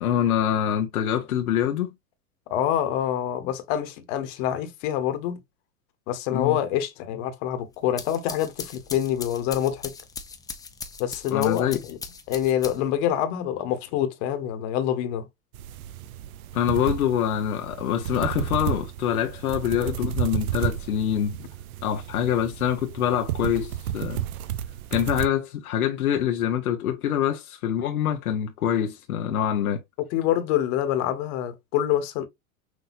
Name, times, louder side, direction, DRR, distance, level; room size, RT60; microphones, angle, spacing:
voice 1, 0.0-1.9 6.3-6.6 11.3-11.8 16.5-21.4 21.8-24.2 24.9-29.8, left 10 dB, 85° left, 1.0 m, -25 dB
voice 2, 2.5-5.4 6.1-9.9 11.0-12.0 12.3-15.3 30.1-32.3, left 11 dB, 55° left, 1.3 m, -26 dB
sound 1, 7.7-13.0, left 5 dB, 10° left, 0.5 m, -39 dB
sound 2, 15.5-25.3, right 12 dB, 80° right, 0.6 m, -32 dB
6.3 x 2.7 x 2.5 m
hypercardioid pair, 115°, 43 cm